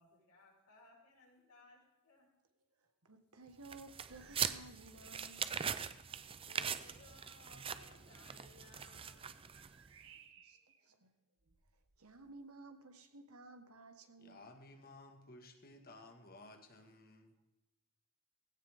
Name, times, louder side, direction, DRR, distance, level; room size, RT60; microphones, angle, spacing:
voice 1, 0.0-2.3 6.3-9.3 10.8-10.9, left 3 dB, 90° left, -2 dB, 5.1 m, -63 dB
voice 2, 3.0-5.6 10.4-11.1 12.0-14.5, right 2 dB, 75° right, 6 dB, 1.6 m, -56 dB
sound 1, 3.6-9.9, right 7 dB, 25° right, 0.5 m, -41 dB
sound 2, 4.1-4.7 5.0-5.4 6.0-6.1 8.5-10.8 11.4-12.4, right 7 dB, 60° right, 1.2 m, -63 dB
voice 3, 14.2-17.3, left 2 dB, 40° left, 4 dB, 1.8 m, -56 dB
17.0 x 16.0 x 3.7 m, 1.0 s
head